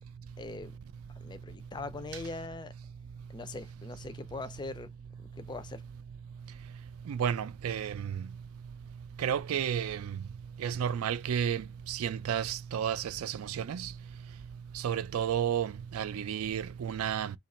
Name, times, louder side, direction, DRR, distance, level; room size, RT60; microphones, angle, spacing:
voice 1, 0.4-0.8 1.2-2.7 3.3-4.9 5.3-5.8, left 3 dB, 20° left, 0.3 m, -41 dB
voice 2, 7.1-8.1 9.2-10.0 10.6-13.9 14.8-17.3, right 8 dB, 85° right, 0.4 m, -32 dB
2.9 x 2.4 x 4.1 m
head